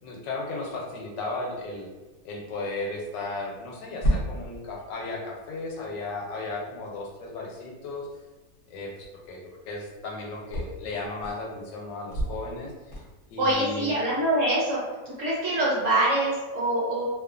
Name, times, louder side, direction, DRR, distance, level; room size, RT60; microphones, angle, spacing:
voice 1, 0.0-1.9 2.2-8.1 8.7-12.7 13.3-13.9, left 3 dB, 90° left, -1 dB, 1.3 m, -35 dB
sound 1, 1.4-13.5, right 1 dB, 55° left, 0.7 m, -37 dB
voice 2, 13.4-14.8 15.2-17.0, right 1 dB, 65° right, -7 dB, 0.8 m, -24 dB
2.9 x 2.3 x 2.3 m, 1.2 s
omnidirectional pair, 1.9 m